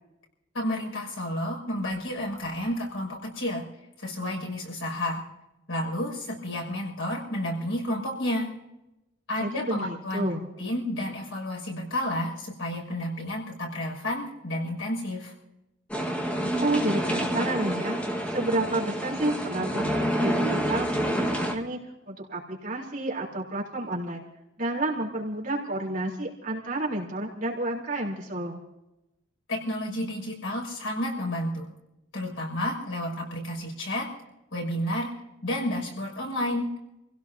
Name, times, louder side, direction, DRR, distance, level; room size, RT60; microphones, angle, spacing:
voice 1, 0.5-3.6 4.0-5.2 5.7-8.5 9.3-10.3 10.6-15.3 29.5-31.7 32.1-34.1 34.5-35.1 35.4-36.7, left 1 dB, 90° left, 0 dB, 6.3 m, -31 dB
voice 2, 9.4-10.5 16.4-21.8 22.1-24.2 24.6-28.6, right 1 dB, 40° right, -4 dB, 3.6 m, -30 dB
sound 1, 15.9-21.6, equal, 5° left, 1.6 m, -28 dB
28.5 x 16.5 x 2.8 m, 0.92 s
head